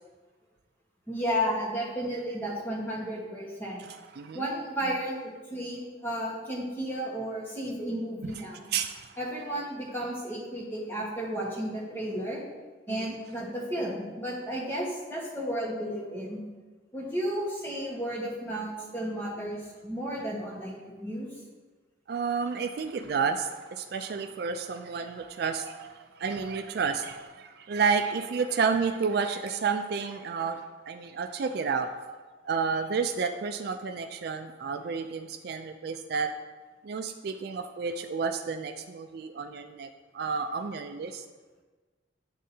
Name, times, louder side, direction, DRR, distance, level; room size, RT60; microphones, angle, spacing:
voice 1, 1.1-3.8 4.3-8.6 9.2-12.4 12.9-16.4 16.9-21.3, equal, 10° left, -4 dB, 1.4 m, -33 dB
voice 2, 8.7-9.1 12.9-13.1 22.1-30.6 30.9-31.9 32.4-36.3 36.8-41.2, right 5 dB, 55° right, 6 dB, 0.3 m, -31 dB
11.0 x 3.7 x 2.8 m, 1.3 s
head